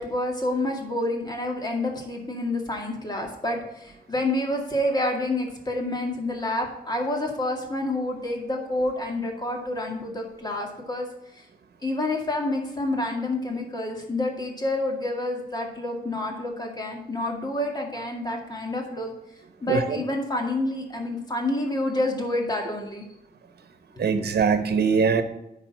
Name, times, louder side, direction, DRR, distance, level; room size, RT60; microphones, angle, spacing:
voice 1, 0.0-11.1 11.3-11.5 11.8-19.1 19.6-23.0 24.2-24.3, left 1 dB, 25° left, 1 dB, 2.1 m, -28 dB
voice 2, 24.0-25.2, right 6 dB, 75° right, 9 dB, 1.0 m, -22 dB
10.0 x 4.1 x 6.2 m, 0.87 s
wide cardioid pair, 105°, 17 cm